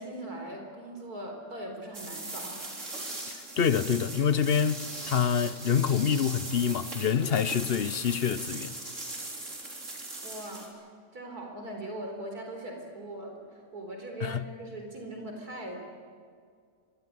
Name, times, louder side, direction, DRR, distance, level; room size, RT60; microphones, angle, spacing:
voice 1, 0.0-3.3 10.2-10.9 11.1-15.8, right 1 dB, 75° right, 4.6 m, -40 dB
sound 1, 1.9-10.7, right 2 dB, 50° right, 4.3 m, -39 dB
voice 2, 3.6-8.7 14.2-14.4, left 7 dB, 45° left, 1.0 m, -26 dB
25.5 x 22.0 x 9.5 m
omnidirectional pair, 1.6 m